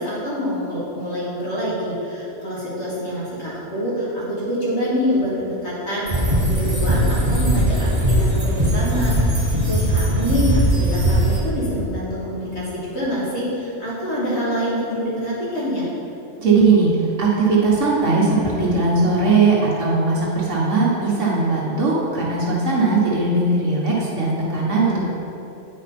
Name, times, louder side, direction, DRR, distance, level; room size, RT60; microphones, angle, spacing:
voice 1, 0.0-15.9, equal, 60° left, -8 dB, 2.2 m, -26 dB
sound 1, 6.1-11.4, right 1 dB, 35° right, 1.4 m, -19 dB
voice 2, 16.4-25.0, right 3 dB, 75° right, -5 dB, 1.6 m, -19 dB
9.3 x 4.8 x 4.2 m, 2.9 s
omnidirectional pair, 1.3 m